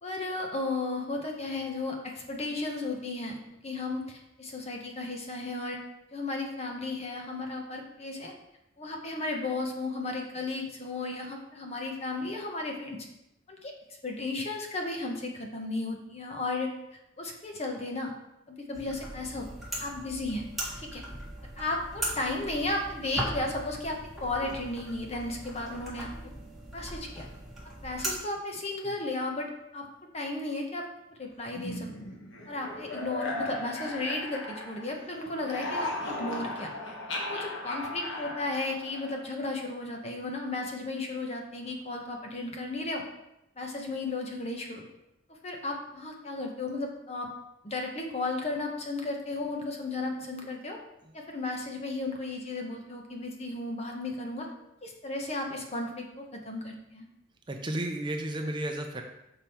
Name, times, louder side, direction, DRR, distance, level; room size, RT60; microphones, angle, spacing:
voice 1, 0.0-3.4 3.6-5.8 6.1-8.3 8.8-13.0 13.5-13.7 14.0-16.7 17.2-18.1 18.5-19.5 19.8-20.4 20.8-21.0 21.6-26.3 26.7-27.3 27.8-29.9 30.1-30.8 31.2-31.9 32.5-36.7 37.2-43.0 43.6-44.8 45.4-47.3 47.6-50.8 51.1-54.5 54.8-57.0, left 2 dB, 35° left, 1 dB, 1.0 m, -34 dB
sound 1, 18.7-28.2, right 1 dB, ahead, 1.5 m, -39 dB
sound 2, 31.5-35.0 35.3-39.3, left 2 dB, 75° left, 1.3 m, -37 dB
voice 2, 57.5-59.0, right 1 dB, 25° right, 3 dB, 0.6 m, -33 dB
6.0 x 5.3 x 4.4 m, 0.88 s
head